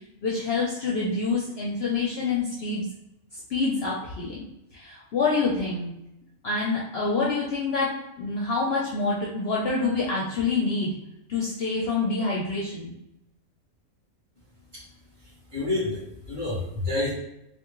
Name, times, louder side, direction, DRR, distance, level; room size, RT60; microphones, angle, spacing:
voice 1, 0.2-2.9 3.5-4.4 4.7-5.9 6.4-7.9 8.2-10.9 11.3-12.9, left 3 dB, 60° left, -4 dB, 0.7 m, -26 dB
voice 2, 15.1-17.1, left 2 dB, 35° right, -15 dB, 1.7 m, -29 dB
3.4 x 2.5 x 3.0 m, 0.82 s
omnidirectional pair, 1.4 m